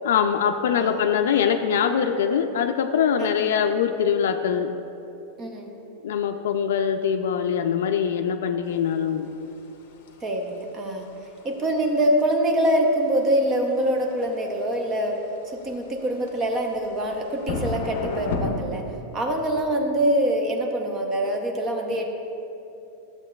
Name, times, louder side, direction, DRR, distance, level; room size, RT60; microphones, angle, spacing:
voice 1, 0.0-4.7 6.0-9.3, left 7 dB, 85° left, 6 dB, 0.3 m, -23 dB
voice 2, 5.4-5.7 10.2-11.1 11.4-18.8 19.1-22.1, right 1 dB, 20° right, 3 dB, 0.6 m, -24 dB
sound 1, 8.7-18.5, left 3 dB, 55° left, 0.7 m, -36 dB
12.0 x 7.1 x 2.3 m, 2.9 s
supercardioid pair, 170°, 0 cm